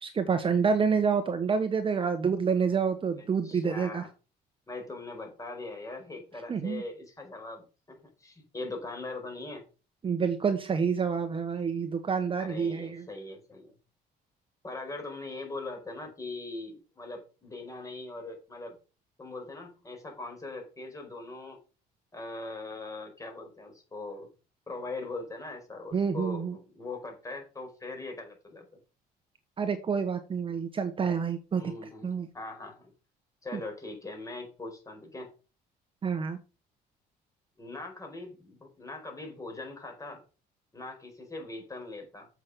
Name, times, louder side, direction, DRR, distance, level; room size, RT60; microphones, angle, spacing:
voice 1, 0.0-4.0 6.5-6.8 10.0-13.0 25.9-26.5 29.6-31.6 32.0-32.3 36.0-36.4, right 6 dB, 30° right, 10 dB, 1.2 m, -28 dB
voice 2, 3.2-4.1 4.7-9.6 12.4-13.7 14.6-18.8 19.2-21.6 22.1-24.3 24.7-28.6 31.5-32.9 33.4-35.3 37.6-40.2 40.7-42.3, left 2 dB, 20° left, 3 dB, 4.8 m, -41 dB
7.6 x 6.1 x 6.8 m, 0.34 s
cardioid pair, 110°, 17 cm